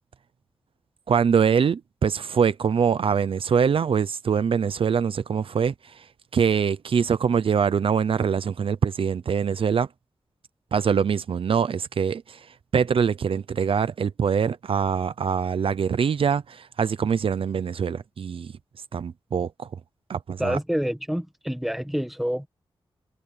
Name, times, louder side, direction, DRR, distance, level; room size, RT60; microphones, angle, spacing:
voice 1, 1.1-6.1 6.3-9.9 10.7-18.5 18.9-19.7 20.1-20.6, right 7 dB, 65° right, 0.6 m, -24 dB
voice 2, 20.4-22.5, equal, ahead, 1.4 m, -27 dB
wide cardioid pair, 165°, 10 cm